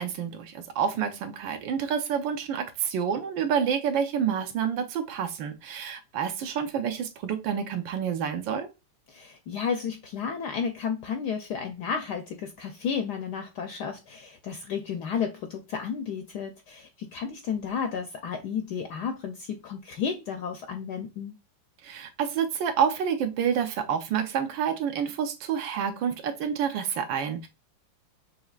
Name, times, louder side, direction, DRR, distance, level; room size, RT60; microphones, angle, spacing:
voice 1, 0.0-8.7 21.8-27.5, right 8 dB, 70° right, 1.4 m, -28 dB
voice 2, 9.1-21.4, left 6 dB, 70° left, 1.0 m, -32 dB
6.1 x 3.2 x 2.4 m
omnidirectional pair, 2.2 m